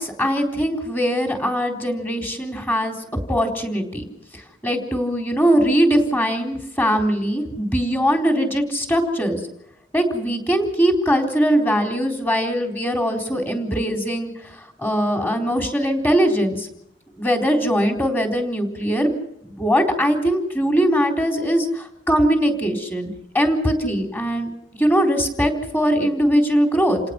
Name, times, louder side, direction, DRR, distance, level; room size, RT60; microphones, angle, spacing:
voice 1, 0.0-3.0 3.3-4.1 4.3-9.4 9.9-16.7 17.2-27.0, equal, 10° left, 3 dB, 4.0 m, -21 dB
29.0 x 18.5 x 6.0 m, 0.82 s
head